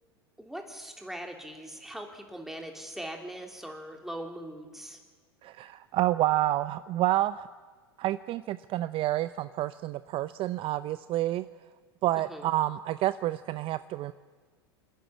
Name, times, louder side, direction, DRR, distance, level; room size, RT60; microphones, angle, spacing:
voice 1, 0.4-5.0 12.1-12.5, right 1 dB, ahead, 2 dB, 3.3 m, -41 dB
voice 2, 5.4-7.5 8.0-11.4 12.0-14.1, right 15 dB, 40° right, 14 dB, 0.6 m, -29 dB
27.0 x 10.0 x 9.7 m, 1.5 s
hypercardioid pair, 90°, 13 cm